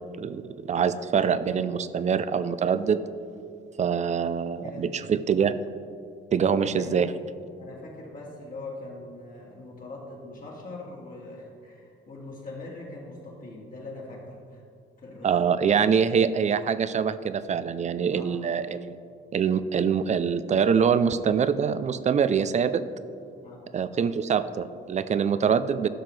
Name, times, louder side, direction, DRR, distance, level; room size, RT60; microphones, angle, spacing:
voice 1, 0.2-3.0 3.8-5.5 6.3-7.1 15.2-19.0 19.3-22.8 23.7-25.9, right 7 dB, 35° right, 14 dB, 0.4 m, -24 dB
voice 2, 4.4-5.1 6.4-7.0 7.6-14.6 15.0-15.4 18.1-18.4 23.4-23.6, left 2 dB, 45° left, -3 dB, 2.0 m, -42 dB
12.5 x 5.9 x 3.2 m, 2.4 s
cardioid pair, 90°, 20 cm